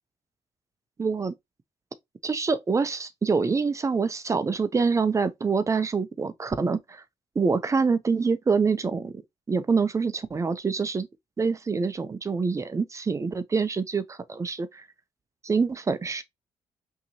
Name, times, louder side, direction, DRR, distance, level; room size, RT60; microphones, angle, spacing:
voice 1, 1.0-1.3 2.2-7.0 7.4-9.2 9.5-11.1 11.4-14.9 15.4-16.2, right 4 dB, 25° right, 0.5 m, -26 dB
5.6 x 2.8 x 2.7 m
cardioid pair, 110°, 12 cm